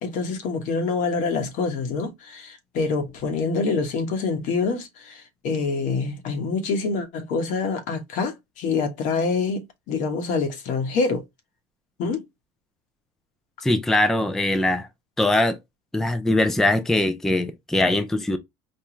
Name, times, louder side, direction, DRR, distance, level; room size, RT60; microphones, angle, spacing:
voice 1, 0.0-11.2 12.0-12.2, left 4 dB, 65° left, 1.2 m, -26 dB
voice 2, 13.6-14.9 15.2-15.6 15.9-18.4, left 1 dB, 5° left, 0.4 m, -21 dB
4.4 x 2.3 x 3.0 m
supercardioid pair, 120°, 14 cm